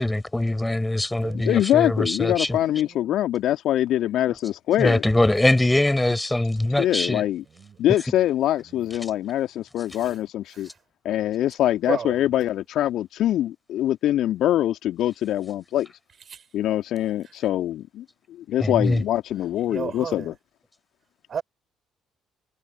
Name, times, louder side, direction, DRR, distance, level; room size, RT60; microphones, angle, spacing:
voice 1, 0.0-2.6 4.8-7.2 18.6-19.0, left 1 dB, 10° left, 4.6 m, -22 dB
voice 2, 1.5-5.0 6.8-7.4 7.8-10.7 11.0-15.9 16.5-20.3, left 12 dB, 60° left, 2.2 m, -24 dB
voice 3, 19.7-20.2 21.3-21.4, right 7 dB, 45° right, 4.9 m, -30 dB
figure-of-eight pair, 50°, 0 cm